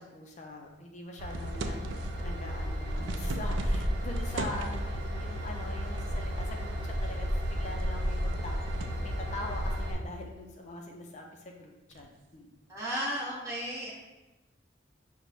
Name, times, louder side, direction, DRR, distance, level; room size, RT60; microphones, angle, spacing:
voice 1, 0.0-1.9 2.2-8.6 9.0-12.6, left 2 dB, 40° left, 1 dB, 0.4 m, -43 dB
Train / Engine, 1.2-9.9, equal, 60° right, 0.8 m, -33 dB
sound 1, 1.3-2.3 2.7-5.0 6.0-6.5 6.9-7.0 7.6-9.0 11.9-12.2, right 3 dB, 80° right, 0.4 m, -40 dB
voice 2, 12.7-13.9, equal, 15° right, -7 dB, 0.8 m, -34 dB
6.1 x 2.1 x 4.0 m, 1.1 s
head